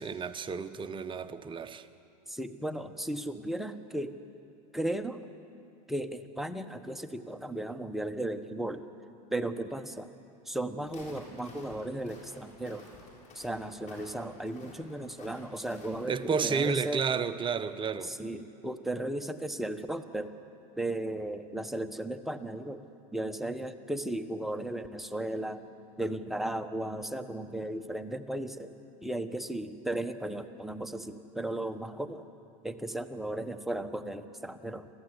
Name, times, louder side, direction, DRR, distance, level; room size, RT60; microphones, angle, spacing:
voice 1, 0.0-1.9 16.1-18.1, right 5 dB, 25° right, 1.1 m, -31 dB
voice 2, 2.3-4.1 4.7-5.2 5.9-8.9 9.3-10.1 10.5-12.9 13.3-17.0 18.0-20.3 20.8-22.8 23.1-25.6 26.0-28.7 29.0-32.3 32.6-34.9, right 1 dB, ahead, 1.2 m, -35 dB
Walk footsteps, 10.8-16.2, left 2 dB, 35° left, 7.0 m, -52 dB
26.5 x 15.0 x 9.8 m
supercardioid pair, 110°, 21 cm